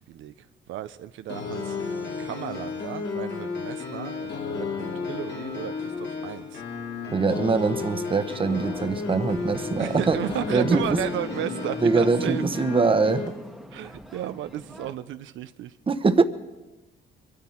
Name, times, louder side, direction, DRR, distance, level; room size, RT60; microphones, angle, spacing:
voice 1, 0.1-1.8 2.2-6.6 9.8-12.4 13.7-15.8, right 12 dB, 80° right, 11 dB, 0.6 m, -34 dB
sound 1, 1.3-13.3, left 5 dB, 60° left, 2.5 m, -33 dB
voice 2, 7.1-10.2 10.5-11.0 11.8-13.3 15.9-16.2, right 4 dB, 25° right, 11 dB, 1.0 m, -23 dB
sound 2, 8.4-14.9, equal, ahead, 1.3 m, -39 dB
23.5 x 13.0 x 4.4 m, 1.1 s
cardioid pair, 90°, 20 cm